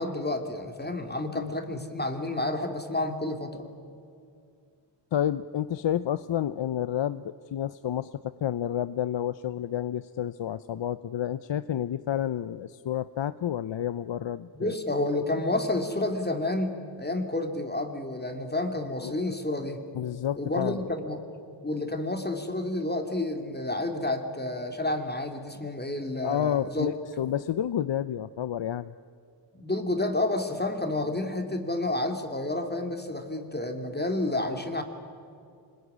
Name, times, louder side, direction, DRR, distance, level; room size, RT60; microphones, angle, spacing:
voice 1, 0.0-3.7 14.5-19.8 20.4-21.2 21.6-26.9 29.5-34.8, left 2 dB, 20° left, 5 dB, 2.8 m, -30 dB
voice 2, 5.1-14.8 19.0-19.2 19.9-20.8 26.2-29.0, left 10 dB, 70° left, 14 dB, 0.7 m, -30 dB
26.5 x 21.0 x 9.8 m, 2.4 s
wide cardioid pair, 90°, 45 cm